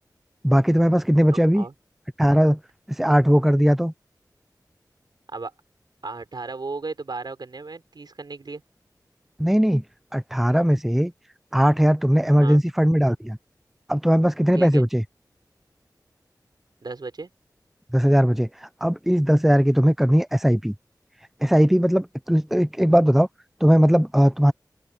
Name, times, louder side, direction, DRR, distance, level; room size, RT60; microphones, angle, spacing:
voice 1, 0.4-1.6 2.2-2.6 3.0-3.9 9.4-9.8 10.1-11.1 11.5-13.4 13.9-15.0 17.9-20.7 21.4-23.3 23.6-24.5, equal, 5° right, 0.7 m, -19 dB
voice 2, 1.3-1.7 5.3-5.5 6.0-8.6 12.4-12.6 14.5-14.9 16.8-17.3, right 3 dB, 75° right, 5.4 m, -35 dB
open air
wide cardioid pair, 70°, 7 cm